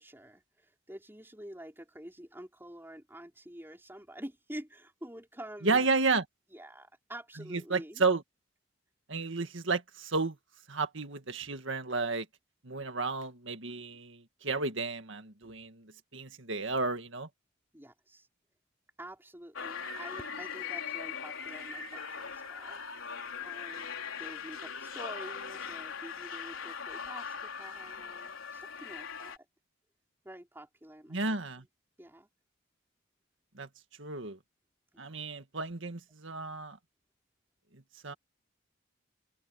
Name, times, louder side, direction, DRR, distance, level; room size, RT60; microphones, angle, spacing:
voice 1, 0.0-5.9 6.5-8.0 11.4-11.5 15.4-15.5 17.7-18.3 19.0-22.8 23.4-29.4 30.2-31.7 32.0-32.3 34.9-35.3, right 1 dB, 10° right, 5.0 m, -48 dB
voice 2, 5.6-6.2 7.5-8.2 9.1-10.4 10.7-12.3 12.6-17.3 31.1-31.6 33.6-33.7 34.0-34.4 35.0-36.8 37.7-38.1, right 4 dB, 65° right, 1.9 m, -32 dB
sound 1, 19.5-29.4, left 6 dB, 85° left, 3.9 m, -40 dB
open air
head